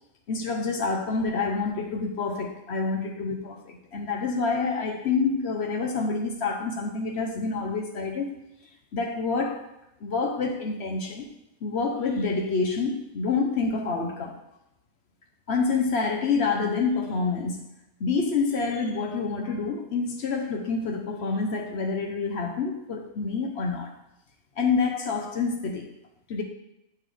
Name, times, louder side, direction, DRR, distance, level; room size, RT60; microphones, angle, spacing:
voice 1, 0.3-8.3 8.9-9.7 10.0-11.3 11.6-14.4 15.5-17.6 18.0-23.9 24.6-25.9 26.3-26.4, left 4 dB, 55° left, 3 dB, 0.9 m, -27 dB
6.9 x 5.7 x 3.3 m, 0.87 s
omnidirectional pair, 1.5 m